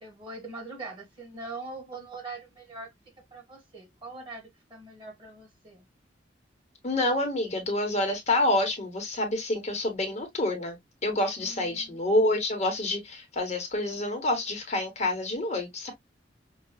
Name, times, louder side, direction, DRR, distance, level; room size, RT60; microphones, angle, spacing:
voice 1, 0.0-2.9 3.3-5.8 11.4-12.0, right 3 dB, 25° right, 1.8 m, -42 dB
voice 2, 6.8-10.8 11.0-15.9, left 1 dB, 40° left, 1.0 m, -27 dB
5.5 x 2.3 x 2.2 m
head